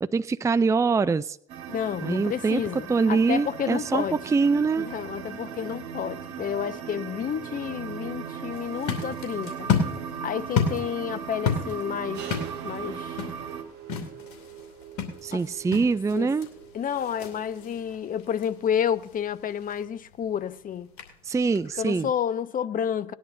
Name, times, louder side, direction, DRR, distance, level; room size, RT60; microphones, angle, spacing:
voice 1, 0.0-1.4 2.0-4.9 15.2-16.5 21.2-22.1, right 4 dB, 15° right, 0.5 m, -24 dB
sound 1, 1.5-13.6, right 7 dB, 80° right, 1.7 m, -38 dB
voice 2, 1.7-4.2 4.8-9.7 10.2-13.2 15.3-15.4 16.1-16.3 16.7-20.9 21.8-23.1, left 8 dB, 45° left, 0.9 m, -30 dB
sound 2, 8.5-22.1, left 5 dB, 85° left, 2.5 m, -33 dB
sound 3, 12.1-17.9, right 10 dB, 60° right, 1.3 m, -44 dB
19.5 x 10.5 x 2.7 m
hypercardioid pair, 60°, 20 cm